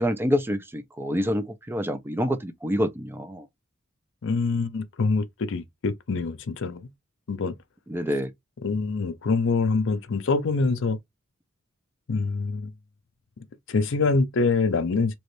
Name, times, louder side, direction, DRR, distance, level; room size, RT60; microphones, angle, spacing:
voice 1, 0.0-3.5 7.9-8.3, equal, 10° right, 0.4 m, -27 dB
voice 2, 4.2-6.9 7.3-7.5 8.6-11.0 12.1-12.7 13.7-15.2, left 4 dB, 60° left, 0.5 m, -25 dB
3.2 x 3.0 x 2.6 m
head